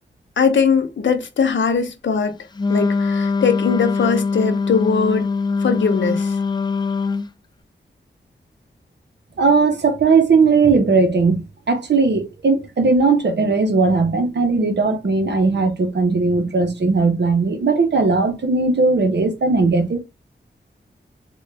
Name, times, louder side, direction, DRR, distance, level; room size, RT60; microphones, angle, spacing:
voice 1, 0.4-2.3 2.7-5.3 5.6-6.3, left 5 dB, 80° left, 0.7 m, -20 dB
Wind instrument woodwind instrument, 2.6-7.3, left 4 dB, 25° left, 0.4 m, -22 dB
voice 2, 9.4-11.4 11.7-20.0, right 4 dB, 65° right, 0.8 m, -17 dB
3.5 x 2.2 x 3.3 m
wide cardioid pair, 65°, 19 cm